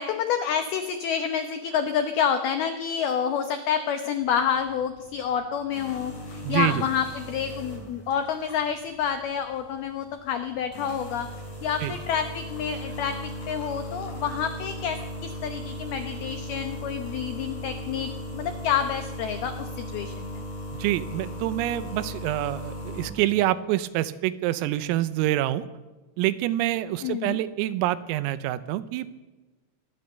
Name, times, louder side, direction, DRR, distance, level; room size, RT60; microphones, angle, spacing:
voice 1, 0.0-11.3 11.6-20.4 27.0-27.4, left 8 dB, 85° left, 8 dB, 2.2 m, -28 dB
sound 1, 4.2-23.4, equal, 35° left, 7.3 m, -38 dB
voice 2, 6.4-6.8 11.8-11.9 20.8-25.7 26.2-29.1, right 14 dB, 85° right, 14 dB, 3.6 m, -26 dB
24.0 x 19.5 x 6.8 m, 1.2 s
omnidirectional pair, 5.9 m